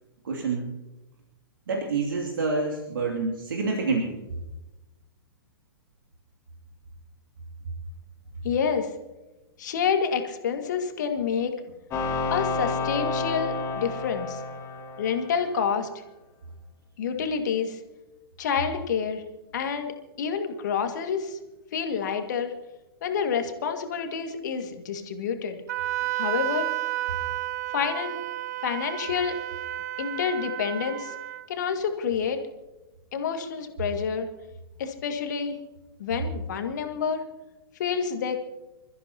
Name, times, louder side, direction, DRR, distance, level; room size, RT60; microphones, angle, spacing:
voice 1, 0.2-0.7 1.7-4.2, right 3 dB, 60° right, 0 dB, 2.6 m, -27 dB
voice 2, 8.4-8.9 9.6-11.6 12.3-14.4 15.0-15.9 17.0-17.8 18.4-19.2 19.5-21.4 21.7-22.5 23.0-25.6 26.1-26.7 27.7-28.2 28.6-29.4 30.0-31.1 31.5-32.4 33.1-34.3 34.8-35.6 36.0-37.2 37.8-38.4, left 6 dB, 50° left, 6 dB, 2.0 m, -28 dB
sound 1, 11.9-15.6, left 3 dB, 25° left, 2.2 m, -30 dB
Wind instrument woodwind instrument, 25.7-31.5, right 15 dB, 45° right, 0.6 m, -31 dB
27.5 x 14.0 x 2.9 m, 1.0 s
figure-of-eight pair, 110°, 12 cm